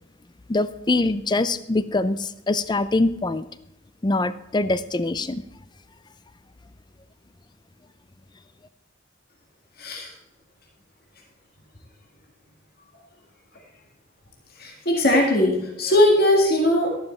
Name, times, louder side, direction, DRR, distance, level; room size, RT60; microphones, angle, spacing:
voice 1, 0.5-3.5 4.0-5.4, left 2 dB, 20° left, 14 dB, 0.5 m, -23 dB
voice 2, 9.8-10.1 14.6-17.0, left 1 dB, 50° left, 0 dB, 1.9 m, -19 dB
12.5 x 11.0 x 4.4 m, 0.81 s
head